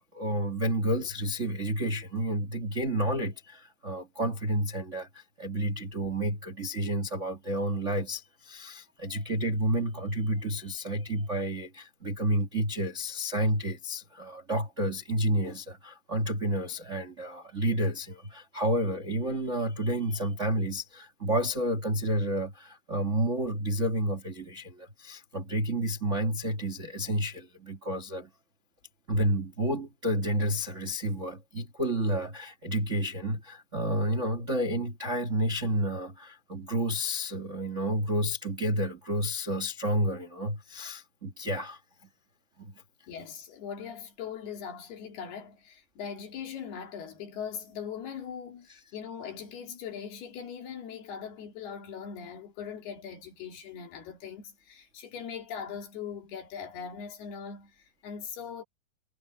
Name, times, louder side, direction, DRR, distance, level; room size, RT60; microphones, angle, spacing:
voice 1, 0.0-28.3 29.1-41.8 42.6-42.7, right 1 dB, 30° right, 1.4 m, -30 dB
voice 2, 43.1-58.6, left 7 dB, 70° left, 4.8 m, -40 dB
omnidirectional pair, 4.8 m